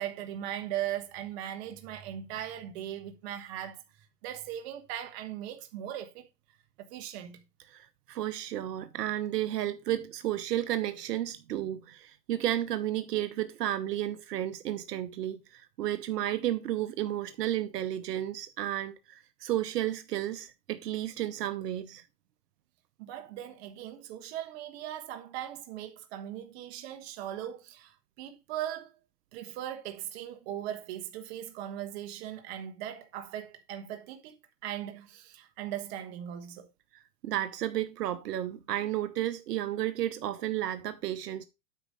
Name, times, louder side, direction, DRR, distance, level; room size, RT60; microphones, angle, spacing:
voice 1, 0.0-3.8 4.2-6.3 6.8-7.4 23.0-28.9 29.3-34.4 34.6-36.7, right 11 dB, 40° right, 1.3 m, -39 dB
voice 2, 7.7-22.0 37.2-41.4, right 12 dB, 75° right, 0.9 m, -32 dB
9.1 x 5.2 x 4.8 m
hypercardioid pair, 140°, 49 cm